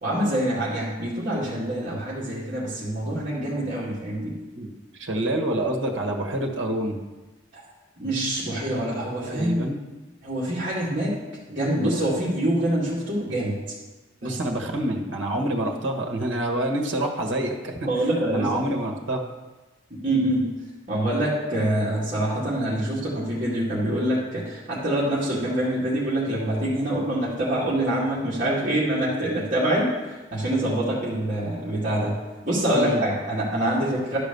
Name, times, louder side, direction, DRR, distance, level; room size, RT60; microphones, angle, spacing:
voice 1, 0.0-4.4 7.5-7.6 8.0-9.7 10.2-11.1 11.5-13.5 14.2-14.4 17.8-18.6 20.0-20.5 20.9-32.1 32.4-34.2, right 1 dB, 45° right, -10 dB, 2.4 m, -25 dB
voice 2, 5.0-7.0 9.2-9.8 14.2-17.8 18.3-19.3 32.7-33.0, right 1 dB, 80° right, 2 dB, 1.4 m, -27 dB
11.5 x 5.0 x 6.8 m, 1.2 s
head